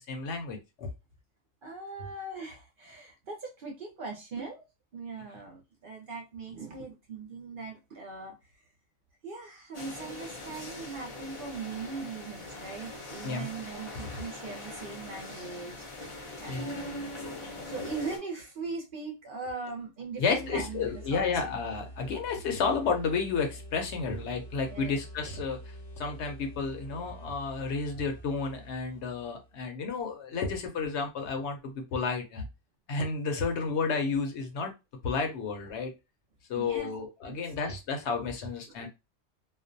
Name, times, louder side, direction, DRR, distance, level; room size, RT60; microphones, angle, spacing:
voice 1, 0.1-0.9 13.2-13.5 14.0-14.2 16.5-16.7 20.2-32.4 32.9-34.7 35.0-35.9 36.5-38.9, left 4 dB, 70° left, 4 dB, 0.8 m, -31 dB
voice 2, 1.6-4.6 4.9-8.3 9.2-17.1 17.6-21.5 24.7-24.9 36.5-36.9 37.3-37.4, right 4 dB, 55° right, 1 dB, 0.7 m, -40 dB
sound 1, 9.7-18.2, left 2 dB, 35° left, 0.5 m, -41 dB
sound 2, 20.1-29.6, equal, 15° right, 0.9 m, -46 dB
2.4 x 2.0 x 2.5 m, 0.25 s
omnidirectional pair, 1.3 m